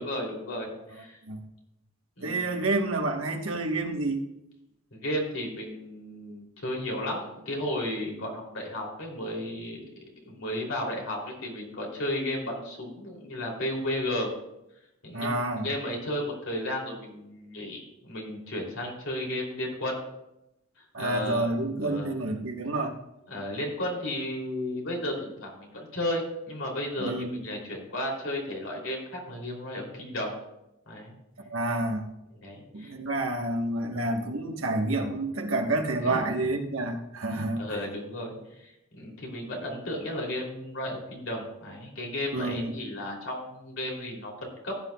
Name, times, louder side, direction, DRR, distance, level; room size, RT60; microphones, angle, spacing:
voice 1, 0.0-1.2 2.2-2.6 4.9-9.9 10.2-14.3 15.0-20.0 21.0-21.5 21.8-22.1 23.3-30.3 30.9-31.1 32.4-32.9 36.0-36.2 37.3-44.7, left 1 dB, 65° left, -1 dB, 3.0 m, -34 dB
voice 2, 0.9-1.4 2.2-4.2 15.1-15.7 20.9-23.0 27.0-27.4 31.4-32.1 32.7-37.6 42.3-42.7, right 2 dB, 80° right, 4 dB, 1.2 m, -29 dB
15.5 x 9.4 x 2.3 m, 0.87 s
head